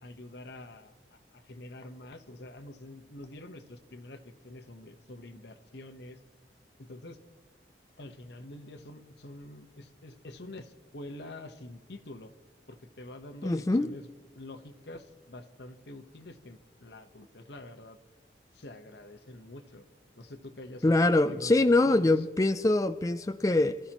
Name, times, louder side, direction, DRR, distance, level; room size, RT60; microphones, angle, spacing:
voice 1, 0.0-6.2 6.8-7.2 8.0-12.3 12.7-14.1 14.3-18.0 18.5-19.8 20.2-22.2, left 1 dB, 75° left, 1.1 m, -46 dB
voice 2, 13.4-13.9 20.8-23.8, left 2 dB, 20° left, 0.4 m, -24 dB
26.0 x 14.5 x 3.0 m
head